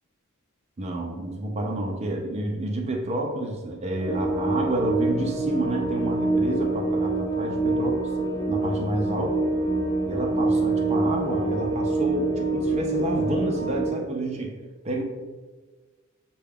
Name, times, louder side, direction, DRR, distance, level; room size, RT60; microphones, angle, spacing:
voice 1, 0.8-8.1 8.5-9.5 10.0-14.6 14.8-15.0, right 1 dB, 30° right, 1 dB, 0.5 m, -29 dB
sound 1, 3.9-13.9, right 2 dB, 20° left, 0.5 m, -25 dB
6.6 x 2.3 x 3.5 m, 1.3 s
head